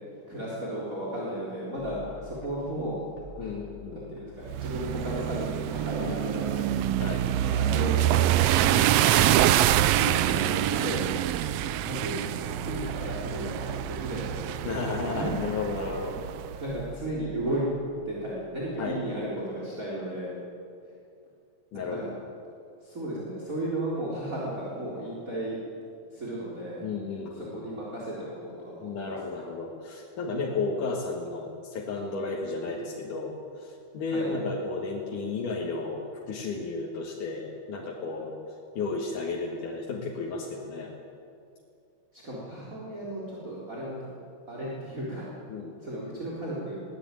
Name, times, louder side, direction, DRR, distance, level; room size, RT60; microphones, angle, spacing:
voice 1, 0.3-3.0 3.4-3.6 3.9-6.8 7.3-8.9 9.8-11.0 11.8-14.6 15.1-15.3 16.6-17.7 18.1-20.4 21.7-22.1 22.8-25.6 26.1-26.9 27.4-29.4 34.0-34.3 42.1-44.1 44.5-45.3 45.8-46.8, right 1 dB, 25° right, -6 dB, 4.3 m, -34 dB
sound 1, 1.8-19.4, left 2 dB, 50° left, 4.1 m, -48 dB
voice 2, 3.4-4.0 6.1-6.2 7.0-7.3 8.7-9.4 14.6-16.2 18.8-19.0 21.7-22.1 26.8-27.5 28.8-38.4 38.8-40.9 45.5-45.7, left 3 dB, 85° left, -3 dB, 3.5 m, -33 dB
sound 2, 4.5-16.6, right 12 dB, 75° right, 1.5 m, -26 dB
22.0 x 19.0 x 9.0 m, 2.5 s
omnidirectional pair, 3.5 m